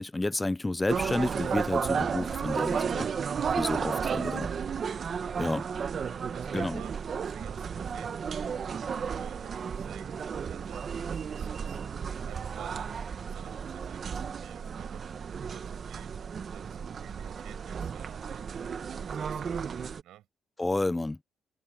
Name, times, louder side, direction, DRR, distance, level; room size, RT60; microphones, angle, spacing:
voice 1, 0.0-3.1 3.5-4.5 5.4-5.7 6.5-6.8 20.6-21.2, left 2 dB, 15° left, 0.3 m, -30 dB
sound 1, 0.9-20.0, right 6 dB, 50° right, 1.1 m, -33 dB
voice 2, 6.1-6.9 7.2-8.3 9.0-10.2 10.5-11.9 12.2-15.0 15.4-16.2 16.5-18.5 19.2-20.3, right 13 dB, 85° right, 7.9 m, -53 dB
open air
cardioid pair, 90°, 0 cm